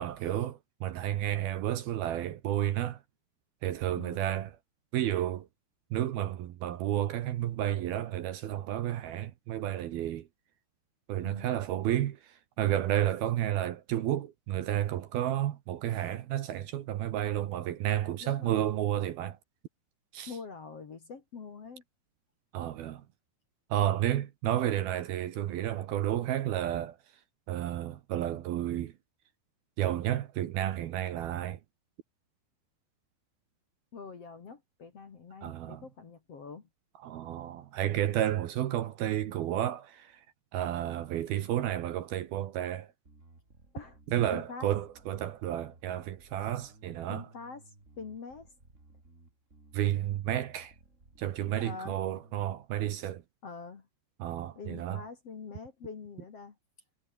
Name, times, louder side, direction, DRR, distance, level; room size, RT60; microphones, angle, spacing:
voice 1, 0.0-3.0 3.6-4.5 4.9-5.5 5.9-10.3 11.1-19.4 20.1-20.3 22.5-23.0 23.7-27.0 27.5-28.9 29.8-31.6 35.4-35.8 37.0-40.2 40.5-42.9 44.1-47.3 49.7-50.7 51.2-53.2 54.2-55.0, right 12 dB, 65° right, 2.9 m, -31 dB
voice 2, 18.2-18.6 20.3-21.8 24.1-24.3 33.9-36.7 43.7-44.0 44.3-44.7 47.1-48.5 51.6-52.0 53.4-53.9 54.6-56.5, left 5 dB, 40° left, 2.7 m, -45 dB
Bass guitar, 43.0-52.6, right 2 dB, 15° right, 4.4 m, -59 dB
omnidirectional pair, 5.2 m